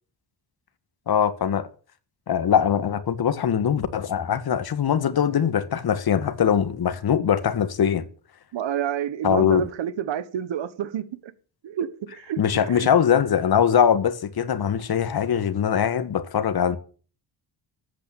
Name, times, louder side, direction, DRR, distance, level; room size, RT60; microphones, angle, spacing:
voice 1, 1.1-1.7 2.3-8.0 9.2-9.7 12.4-16.8, left 8 dB, 55° left, 1.8 m, -22 dB
voice 2, 8.5-11.3 11.6-12.9, right 9 dB, 80° right, 1.4 m, -29 dB
13.5 x 8.8 x 9.2 m
wide cardioid pair, 150°, 44 cm